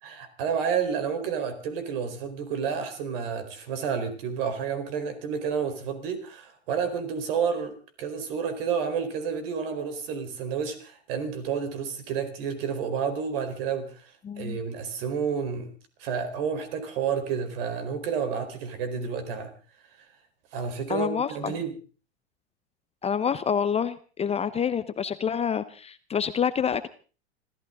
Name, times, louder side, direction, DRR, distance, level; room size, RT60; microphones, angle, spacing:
voice 1, 0.0-15.7 16.0-19.5 20.5-21.7, right 6 dB, 60° right, 9 dB, 4.4 m, -30 dB
voice 2, 14.2-14.6 20.9-21.5 23.0-26.9, left 7 dB, 20° left, 13 dB, 0.8 m, -27 dB
26.5 x 14.0 x 3.9 m, 0.38 s
hypercardioid pair, 95°, 33 cm